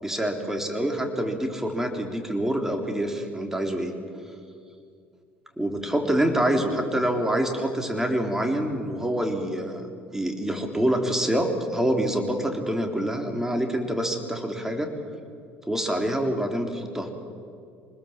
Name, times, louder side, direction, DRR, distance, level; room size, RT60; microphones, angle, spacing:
voice 1, 0.0-3.9 5.6-9.8 10.1-14.9 15.7-17.1, right 1 dB, 5° right, 4 dB, 3.4 m, -26 dB
24.5 x 20.5 x 7.4 m, 2.4 s
hypercardioid pair, 65°, 6 cm